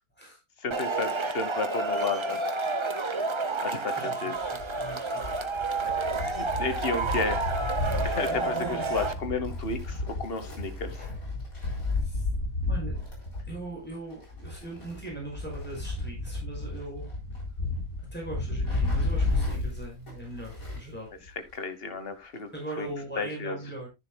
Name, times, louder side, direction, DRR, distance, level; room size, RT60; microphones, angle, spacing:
voice 1, 0.6-2.4 3.6-4.3 5.8-5.9 6.2-7.4 8.0-10.9 21.5-22.5 22.8-22.9 23.2-23.6, left 4 dB, 45° left, 10 dB, 1.3 m, -32 dB
Male speech man speaking / Shout / Clapping, 0.7-9.1, right 3 dB, 30° right, 0.6 m, -30 dB
voice 2, 4.0-5.3 12.0-12.3 12.7-12.9 13.5-17.1 18.1-21.1 22.5-23.9, right 1 dB, 5° left, -1 dB, 5.4 m, -40 dB
Wind, 4.4-21.0 21.3-21.4 22.4-22.5, left 2 dB, 80° left, 4.3 m, -32 dB
10.5 x 9.9 x 2.2 m, 0.22 s
omnidirectional pair, 1.5 m